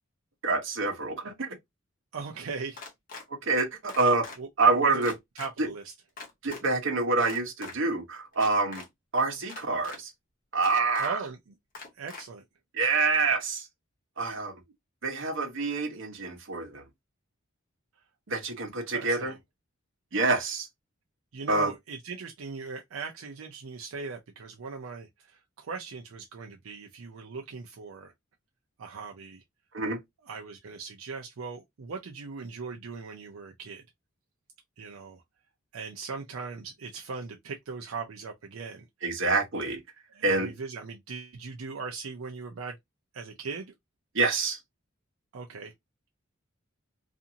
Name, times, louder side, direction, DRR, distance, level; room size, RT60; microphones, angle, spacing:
voice 1, 0.4-1.5 3.3-4.3 4.6-5.1 6.4-8.8 9.1-10.1 10.5-11.2 12.7-13.6 14.2-14.5 15.0-16.8 18.3-19.3 20.1-20.7 21.5-21.7 29.7-30.0 39.0-39.8 40.2-40.5 44.1-44.6, right 3 dB, 65° right, 0.8 m, -26 dB
voice 2, 2.1-2.8 4.4-4.5 4.8-5.0 5.3-5.9 11.0-11.6 11.9-12.4 18.9-19.4 21.3-28.1 28.8-29.4 30.2-33.8 34.8-35.2 35.7-38.9 40.1-42.8 43.1-43.7 45.3-45.7, right 4 dB, 85° right, 0.5 m, -39 dB
sound 1, 2.7-3.2 3.9-4.4 5.0-5.5 6.2-6.6 7.2-7.7 8.3-8.9 9.5-10.0 10.6-11.1 11.7-12.2, left 4 dB, 45° left, 0.8 m, -42 dB
2.5 x 2.5 x 2.7 m
head